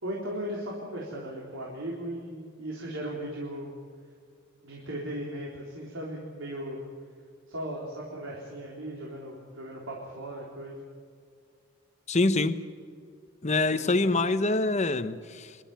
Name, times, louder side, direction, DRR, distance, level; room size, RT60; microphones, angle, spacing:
voice 1, 0.0-3.7 4.6-6.8 7.5-10.8 13.6-14.0, right 1 dB, 75° right, -3 dB, 3.9 m, -37 dB
voice 2, 12.1-12.6 13.4-15.6, left 2 dB, 35° left, 12 dB, 0.9 m, -25 dB
27.0 x 12.5 x 9.1 m, 2.2 s
head